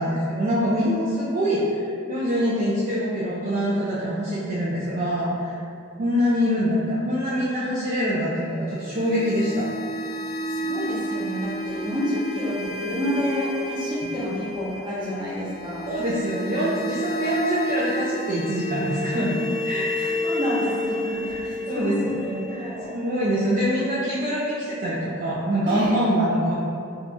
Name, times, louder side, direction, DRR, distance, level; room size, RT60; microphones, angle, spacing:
voice 1, 0.0-5.6 6.0-9.7 15.9-20.2 21.0-21.4 21.7-26.6, equal, 40° right, -7 dB, 0.4 m, -24 dB
sound 1, 8.7-23.6, equal, 80° left, 0.6 m, -31 dB
voice 2, 10.5-15.9 19.9-23.0 25.7-25.9, left 1 dB, 20° right, -9 dB, 1.0 m, -29 dB
2.8 x 2.3 x 4.1 m, 2.5 s
head